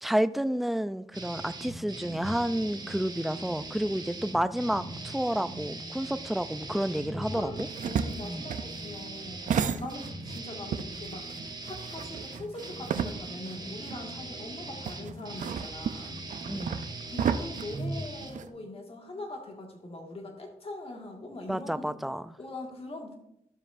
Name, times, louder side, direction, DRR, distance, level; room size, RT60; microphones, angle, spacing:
voice 1, 0.0-7.7 8.2-8.5 16.5-16.8 21.5-22.2, equal, ahead, 13 dB, 0.4 m, -30 dB
sound 1, 1.1-18.3, right 2 dB, 35° right, 1.2 m, -40 dB
voice 2, 7.1-11.3 11.6-16.2 17.1-22.0 22.4-23.2, left 2 dB, 50° left, 2 dB, 1.9 m, -42 dB
sound 2, 7.6-10.4 10.7-13.6 13.9-14.0 14.8-18.5, right 7 dB, 75° right, 0.5 m, -33 dB
11.5 x 7.2 x 2.6 m, 0.77 s
cardioid pair, 70°, 13 cm